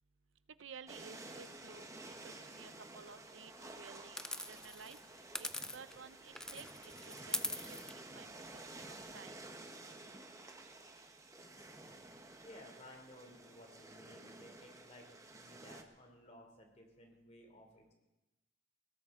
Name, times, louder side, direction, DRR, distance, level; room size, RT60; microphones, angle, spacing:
voice 1, 0.6-5.0 5.4-8.3 8.8-9.3 10.7-10.8, right 6 dB, 75° right, 13 dB, 0.6 m, -55 dB
sound 1, 0.9-15.8, right 2 dB, 15° right, 1.0 m, -52 dB
sound 2, 4.2-6.1 6.4-9.2, left 1 dB, 5° left, 0.5 m, -43 dB
voice 2, 12.4-17.9, left 1 dB, 35° left, 3 dB, 2.9 m, -57 dB
20.5 x 17.5 x 3.7 m, 1.0 s
head